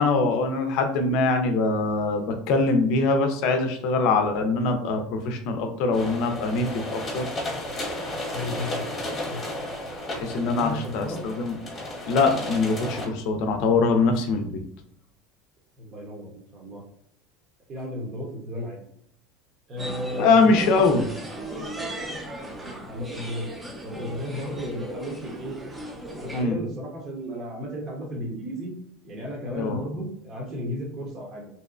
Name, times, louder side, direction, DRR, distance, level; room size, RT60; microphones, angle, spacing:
voice 1, 0.0-7.3 10.2-11.6 12.1-14.6 20.2-21.0 26.3-26.6 29.5-29.8, left 3 dB, 65° left, 6 dB, 0.5 m, -23 dB
sound 1, 5.9-13.1, left 1 dB, 30° left, 1.0 m, -33 dB
voice 2, 8.3-9.4 10.3-11.2 15.8-16.8 17.7-18.8 19.7-20.9 22.1-22.3 22.6-23.5 23.8-25.5 26.2-28.7 29.0-31.5, equal, 40° right, -3 dB, 0.9 m, -34 dB
sound 2, 19.8-26.4, right 1 dB, 10° right, 0.6 m, -37 dB
2.7 x 2.1 x 2.4 m, 0.68 s
supercardioid pair, 100°, 0 cm